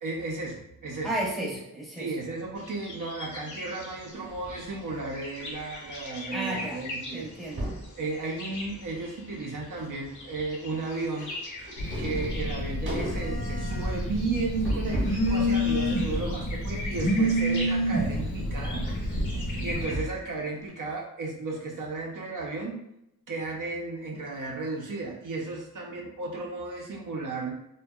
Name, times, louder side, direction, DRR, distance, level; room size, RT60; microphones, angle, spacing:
voice 1, 0.0-1.1 2.0-7.3 8.0-11.3 11.6-18.8 19.3-22.8 23.3-27.5, right 3 dB, 60° right, -1 dB, 0.5 m, -34 dB
voice 2, 1.0-2.1 6.3-6.8 7.1-7.7, right 1 dB, ahead, -5 dB, 0.6 m, -33 dB
sound 1, 2.6-19.9, left 2 dB, 55° left, 0.7 m, -42 dB
sound 2, 4.1-6.3 6.5-6.8 7.1-7.9 8.4-9.1 9.4-15.3 15.7-20.3 20.7-20.8, equal, 30° right, 0.9 m, -38 dB
Telephone, 11.8-19.8, equal, 85° left, 0.8 m, -28 dB
2.6 x 2.2 x 2.2 m, 0.80 s
wide cardioid pair, 100°, 36 cm